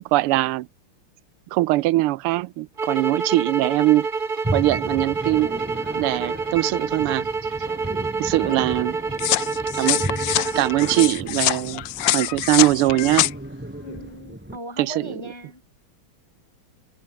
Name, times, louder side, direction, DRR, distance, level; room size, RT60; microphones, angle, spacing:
voice 1, 0.1-0.7 1.5-4.1 4.5-5.5 6.0-7.3 8.2-9.0 9.8-10.0 10.6-11.9 12.1-13.3 14.8-15.1, right 17 dB, 85° right, 1.6 m, -21 dB
sound 1, 2.8-11.1, right 4 dB, 25° right, 1.4 m, -28 dB
sound 2, 4.4-14.6, right 1 dB, 5° right, 1.1 m, -34 dB
sound 3, 9.2-13.3, left 14 dB, 70° left, 1.2 m, -24 dB
voice 2, 13.8-15.6, equal, 20° left, 0.9 m, -38 dB
omnidirectional pair, 2.4 m